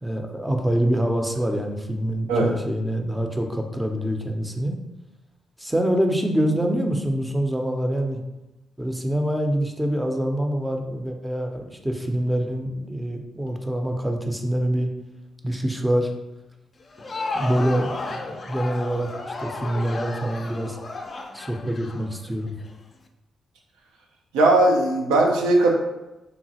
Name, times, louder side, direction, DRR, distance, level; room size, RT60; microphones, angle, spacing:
voice 1, 0.0-4.7 5.6-8.2 8.8-14.9 15.4-16.1 17.3-18.2 18.5-19.1 19.4-20.8 21.3-22.5, right 1 dB, 10° right, 3 dB, 0.5 m, -25 dB
Crowd, 16.8-22.7, left 3 dB, 45° left, 0.4 m, -33 dB
voice 2, 24.3-25.7, right 2 dB, 90° right, 0 dB, 0.5 m, -18 dB
3.1 x 2.4 x 2.7 m, 0.99 s
supercardioid pair, 50°, 0 cm